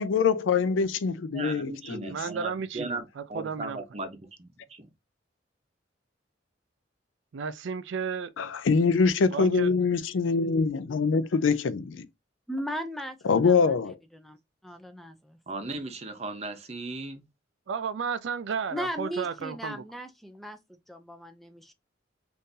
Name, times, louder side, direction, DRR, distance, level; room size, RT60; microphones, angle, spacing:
voice 1, 0.0-2.1 8.4-12.1 13.2-14.0, left 5 dB, 80° left, 0.4 m, -24 dB
voice 2, 1.3-4.9 9.4-9.5 15.5-17.3, right 2 dB, 35° right, 0.7 m, -37 dB
voice 3, 2.1-3.8 7.3-8.3 9.3-9.7 17.7-19.8, right 6 dB, 70° right, 0.4 m, -33 dB
voice 4, 12.5-14.4 14.6-15.4 18.7-20.6 20.9-21.7, equal, ahead, 0.4 m, -37 dB
3.7 x 2.6 x 2.6 m
head